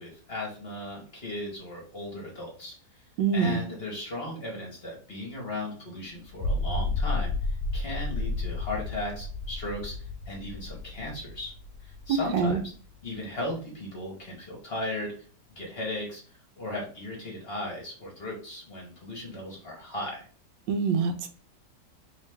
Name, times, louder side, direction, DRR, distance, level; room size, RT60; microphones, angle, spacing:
voice 1, 0.0-2.7 3.3-11.5 11.8-12.7 13.0-15.1 15.6-16.2 16.6-20.3, left 1 dB, 40° left, -1 dB, 1.1 m, -36 dB
voice 2, 3.2-3.6 12.1-12.6 20.7-21.3, right 5 dB, 85° right, 7 dB, 1.3 m, -25 dB
sound 1, 6.3-12.7, left 2 dB, 70° left, 1.0 m, -32 dB
3.2 x 3.1 x 3.3 m, 0.42 s
omnidirectional pair, 1.9 m